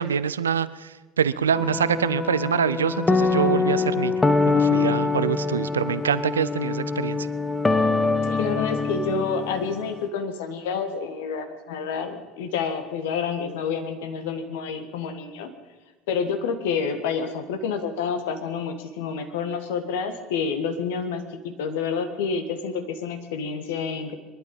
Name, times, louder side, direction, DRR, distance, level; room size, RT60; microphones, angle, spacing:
voice 1, 0.0-7.3, right 7 dB, 75° right, 16 dB, 0.5 m, -25 dB
sound 1, 1.5-9.9, left 3 dB, 15° left, 0.9 m, -24 dB
voice 2, 8.3-15.5 16.1-24.1, left 5 dB, 60° left, 7 dB, 1.6 m, -28 dB
22.0 x 11.5 x 5.4 m, 1.2 s
figure-of-eight pair, 70°, 0 cm